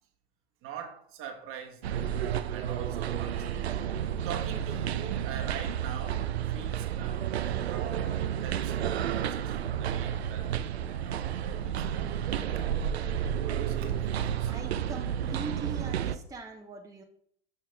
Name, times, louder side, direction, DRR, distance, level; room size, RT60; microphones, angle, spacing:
voice 1, 0.6-2.2 2.5-3.7 4.2-6.2 6.5-7.3 7.6-9.5 9.8-12.1 13.4-14.5, right 7 dB, 45° right, 1.2 m, -43 dB
sound 1, 1.8-16.2, right 9 dB, 85° right, 0.5 m, -31 dB
voice 2, 14.5-17.0, right 3 dB, 10° right, 0.8 m, -41 dB
6.6 x 5.5 x 3.3 m
hypercardioid pair, 80°, 31 cm